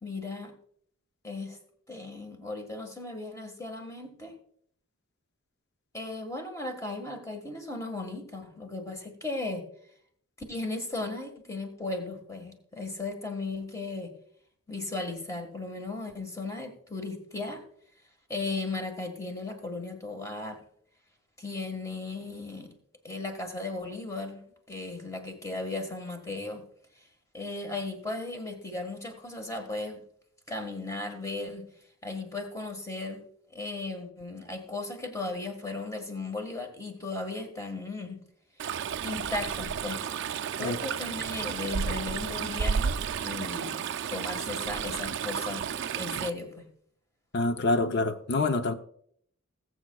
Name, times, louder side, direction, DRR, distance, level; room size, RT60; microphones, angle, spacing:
voice 1, 0.0-0.5 1.2-1.6 1.9-4.3 5.9-9.6 10.5-14.1 14.7-17.6 18.3-20.6 21.4-22.7 23.0-26.6 27.3-30.0 30.5-31.6 32.0-33.2 33.5-38.2 39.0-40.0 40.6-45.6 45.9-46.7, left 2 dB, 15° left, 1.5 m, -36 dB
Stream, 38.6-46.3, right 7 dB, 55° right, 0.4 m, -32 dB
voice 2, 47.3-48.7, left 2 dB, 50° left, 0.7 m, -26 dB
20.5 x 7.7 x 2.3 m
head